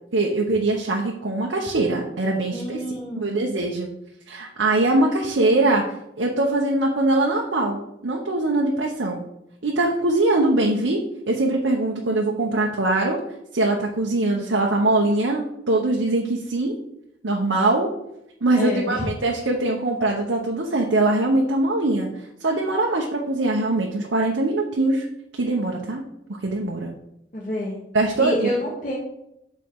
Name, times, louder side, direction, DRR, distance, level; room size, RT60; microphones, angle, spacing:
voice 1, 0.1-2.8 3.2-3.9 4.3-5.8 6.2-9.2 9.6-13.2 13.5-16.7 17.2-17.9 18.4-22.1 22.4-25.1 25.4-26.0 26.4-26.9 27.9-28.5, right 2 dB, 90° right, -1 dB, 1.0 m, -22 dB
voice 2, 2.5-3.4 18.5-19.1 27.3-27.8 28.2-29.0, left 1 dB, 45° left, -4 dB, 1.4 m, -28 dB
7.4 x 4.5 x 4.7 m, 0.81 s
head